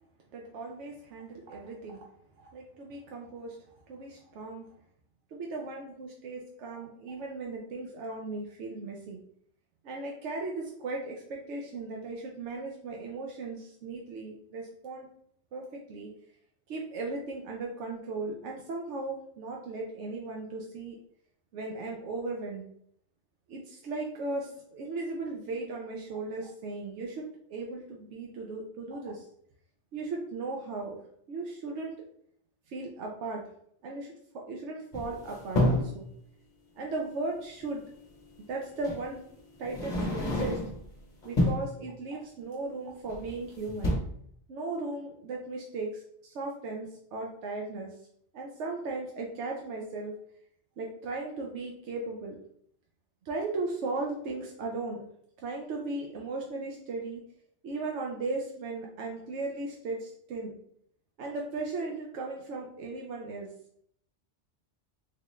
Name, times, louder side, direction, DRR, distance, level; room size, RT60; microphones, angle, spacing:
voice 1, 0.3-2.1 2.4-4.7 5.3-9.2 9.8-15.1 15.5-16.1 16.7-21.0 21.5-22.6 23.5-29.3 29.9-31.0 31.3-31.9 32.7-33.4 33.8-36.1 36.7-37.8 38.5-39.2 39.6-40.6 41.2-44.0 44.5-48.0 48.3-50.1 50.8-52.4 53.2-55.0 55.4-57.2 57.6-60.5 61.2-63.5, right 3 dB, 85° right, -1 dB, 0.9 m, -37 dB
sound 1, 34.9-36.0 37.6-37.7 38.8-39.1 39.6-40.9 41.2-41.7 43.1-43.4 43.7-44.0, left 1 dB, 40° left, 0.9 m, -29 dB
3.6 x 2.4 x 3.1 m, 0.67 s
omnidirectional pair, 1.2 m